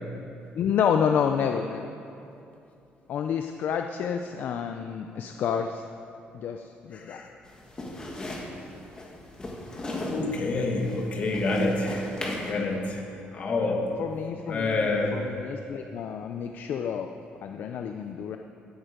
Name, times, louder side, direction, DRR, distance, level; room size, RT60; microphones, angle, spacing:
voice 1, 0.5-1.9 3.1-5.8 6.3-7.2 13.6-13.7 14.0-17.1 17.4-18.4, left 7 dB, 55° left, 6 dB, 0.5 m, -29 dB
voice 2, 6.9-7.3 10.1-12.1 12.4-13.0 13.3-13.9 14.5-15.2, left 2 dB, 40° left, 0 dB, 1.7 m, -27 dB
sound 1, 7.4-12.5, left 1 dB, 20° left, 1.7 m, -37 dB
14.5 x 8.9 x 5.1 m, 2.7 s
cardioid pair, 160°, 4 cm